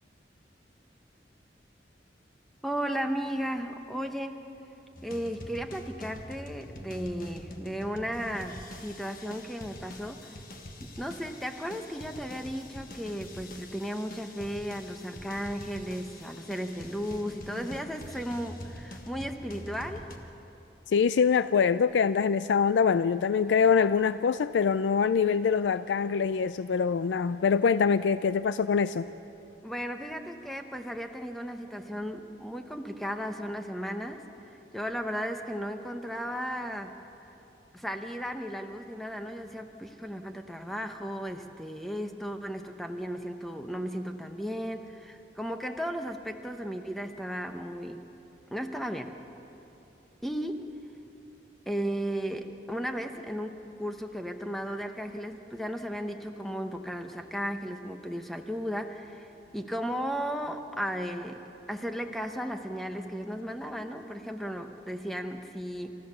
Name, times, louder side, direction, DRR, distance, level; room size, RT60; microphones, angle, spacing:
voice 1, 2.6-4.4 5.0-10.3 10.8-20.1 29.6-34.2 34.7-37.0 37.7-48.0 48.5-49.1 50.2-50.7 51.7-66.0, equal, ahead, 0.9 m, -35 dB
sound 1, 5.0-20.2, left 1 dB, 50° left, 1.5 m, -45 dB
voice 2, 20.9-29.1, left 6 dB, 85° left, 0.4 m, -24 dB
28.5 x 14.0 x 6.7 m
head